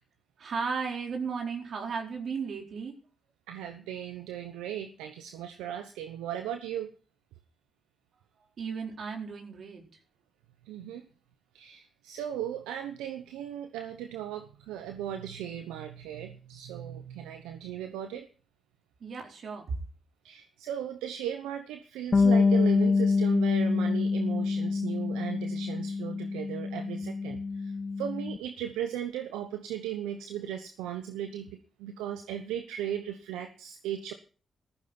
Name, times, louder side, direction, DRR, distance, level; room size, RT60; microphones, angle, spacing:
voice 1, 0.4-2.9 8.6-9.8 19.0-19.8, right 5 dB, 65° right, 2 dB, 4.3 m, -35 dB
voice 2, 3.5-6.9 10.7-11.0 11.5-18.3 20.2-34.1, right 10 dB, 90° right, 8 dB, 0.9 m, -37 dB
Bass guitar, 22.1-28.4, left 4 dB, 45° left, 0.6 m, -26 dB
14.5 x 14.5 x 4.4 m, 0.39 s
hypercardioid pair, 40°, 0 cm